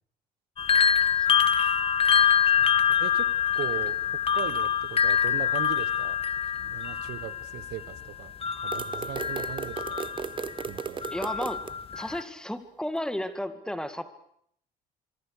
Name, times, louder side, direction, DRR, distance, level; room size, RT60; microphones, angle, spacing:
sound 1, 0.6-10.6 11.0-12.2, left 8 dB, 35° left, 1.4 m, -25 dB
voice 1, 2.7-6.2 6.6-8.3 8.6-10.0 10.7-11.0, right 14 dB, 80° right, 15 dB, 1.2 m, -39 dB
sound 2, 8.7-11.7, right 6 dB, 30° right, 0.9 m, -36 dB
voice 2, 11.1-11.6 11.9-14.1, left 1 dB, 5° left, 10 dB, 2.0 m, -33 dB
25.5 x 23.5 x 6.6 m, 0.68 s
cardioid pair, 110°, 17 cm